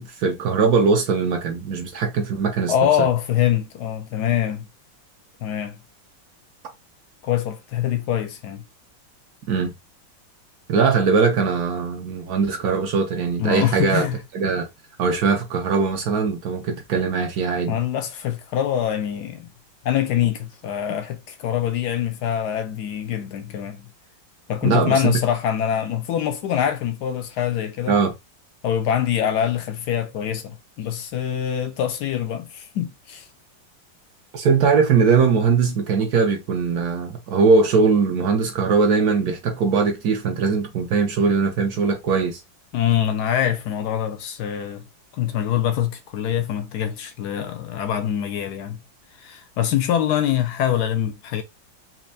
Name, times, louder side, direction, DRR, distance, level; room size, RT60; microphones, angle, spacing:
voice 1, 0.0-2.7 9.5-9.7 10.7-14.1 14.3-14.7 15.0-17.8 24.6-25.2 27.9-28.1 34.3-42.4, right 5 dB, 65° right, 1.1 m, -20 dB
voice 2, 2.7-4.7 5.4-5.7 7.2-8.6 13.4-14.1 17.7-19.5 19.8-23.9 24.5-28.0 28.6-33.3 42.7-44.8 45.1-48.8 49.2-51.4, left 10 dB, 70° left, 1.0 m, -24 dB
4.3 x 2.6 x 2.6 m
omnidirectional pair, 2.1 m